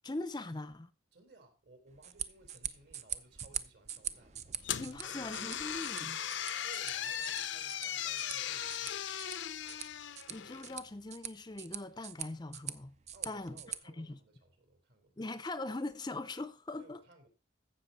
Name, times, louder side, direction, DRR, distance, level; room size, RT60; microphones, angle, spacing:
voice 1, 0.0-0.9 4.8-6.2 10.3-12.9 13.3-14.2 15.2-17.0, left 2 dB, 20° left, 0.6 m, -41 dB
voice 2, 1.1-4.4 4.9-5.5 6.6-9.0 13.1-15.2 16.8-17.3, right 2 dB, 60° right, 3.7 m, -59 dB
sound 1, 1.9-13.8, right 9 dB, 35° right, 0.6 m, -44 dB
sound 2, 4.6-10.8, left 10 dB, 75° left, 0.7 m, -38 dB
15.5 x 6.2 x 4.1 m
head